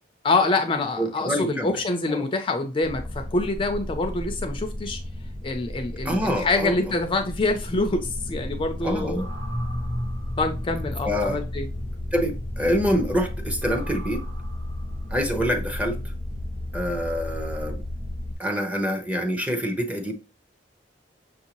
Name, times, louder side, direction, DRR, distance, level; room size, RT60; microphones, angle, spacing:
voice 1, 0.2-5.0 5.4-9.2 10.4-11.7, left 3 dB, 30° left, 0.5 m, -26 dB
voice 2, 1.0-1.8 2.1-2.2 6.0-6.8 8.8-9.3 11.0-11.4 12.1-14.2 15.1-16.0 16.7-17.8 18.4-20.1, equal, 10° right, 0.8 m, -26 dB
sound 1, 2.8-18.4, left 1 dB, 80° right, 1.4 m, -33 dB
6.4 x 2.7 x 2.9 m
head